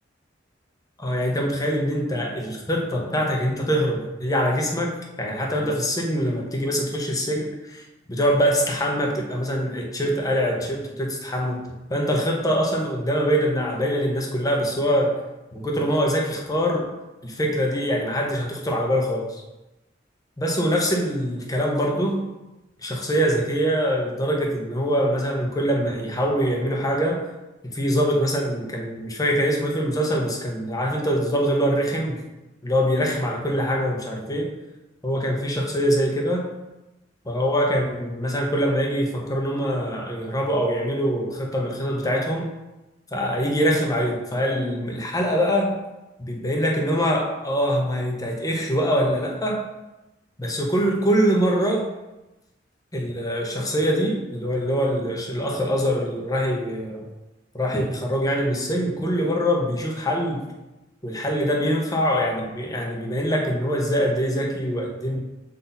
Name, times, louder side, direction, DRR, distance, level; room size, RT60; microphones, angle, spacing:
voice 1, 1.0-4.9 5.2-7.8 8.1-11.6 11.9-15.2 15.5-16.9 17.2-19.4 20.4-22.2 22.8-27.2 27.7-32.2 32.6-34.5 35.0-36.5 37.3-42.5 43.1-45.7 46.3-49.6 50.4-51.9 52.9-57.0 57.5-60.5 61.0-65.2, equal, 20° left, 0 dB, 0.9 m, -24 dB
7.4 x 4.1 x 4.1 m, 1.0 s
head